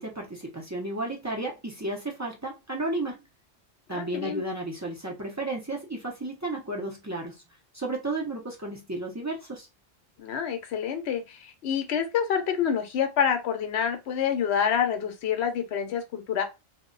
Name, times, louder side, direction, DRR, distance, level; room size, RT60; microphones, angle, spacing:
voice 1, 0.0-3.2 3.9-7.4 7.7-9.7, right 2 dB, 20° right, 0.4 m, -33 dB
voice 2, 3.9-4.4 10.2-16.4, left 8 dB, 70° left, 0.9 m, -27 dB
2.2 x 2.1 x 3.7 m
omnidirectional pair, 1.2 m